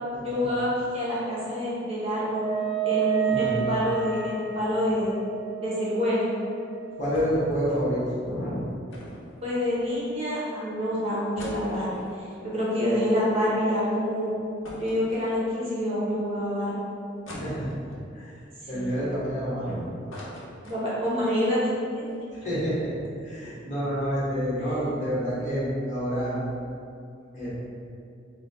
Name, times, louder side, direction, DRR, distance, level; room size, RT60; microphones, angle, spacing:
voice 1, 0.2-2.5 2.8-5.1 5.6-6.3 9.4-14.3 14.8-16.8 18.7-19.0 20.6-21.6 24.6-24.8, equal, 30° right, -8 dB, 0.8 m, -27 dB
Wind instrument woodwind instrument, 2.3-8.0, right 9 dB, 15° left, 1.1 m, -31 dB
voice 2, 3.3-3.7 7.0-8.6 17.3-17.7 18.1-18.3 18.7-19.8 22.4-22.9 23.2-26.4 27.3-27.5, equal, 40° left, -9 dB, 1.3 m, -28 dB
sound 1, 7.1-7.6 7.8-7.9 8.9-10.2 10.7-10.8 11.1-13.6 13.9-14.0 14.6-15.8 16.3-16.4 17.3-18.1 18.6-19.6 19.9-21.2 21.6-21.7 21.9-22.1, left 1 dB, 85° left, 0.8 m, -43 dB
4.1 x 2.2 x 4.1 m, 2.5 s
head